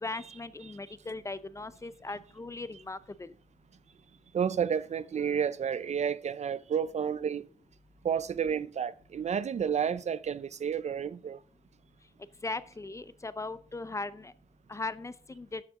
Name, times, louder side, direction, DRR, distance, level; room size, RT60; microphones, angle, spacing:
voice 1, 0.0-3.3 12.4-14.3 14.7-15.6, left 3 dB, 20° left, 0.5 m, -38 dB
voice 2, 4.3-7.4 8.0-11.4, right 7 dB, 50° right, 0.4 m, -31 dB
12.5 x 7.1 x 3.6 m
wide cardioid pair, 130°, 14 cm